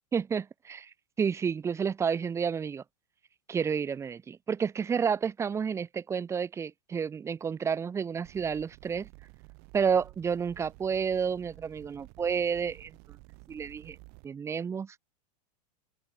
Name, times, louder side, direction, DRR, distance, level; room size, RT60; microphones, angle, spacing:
voice 1, 0.1-0.9 1.2-2.8 3.5-9.1 9.7-12.9 13.5-14.0 14.2-15.0, right 6 dB, 15° right, 0.5 m, -30 dB
sound 1, 8.2-14.3, right 35 dB, 50° right, 1.1 m, -52 dB
open air
hypercardioid pair, 115°, 21 cm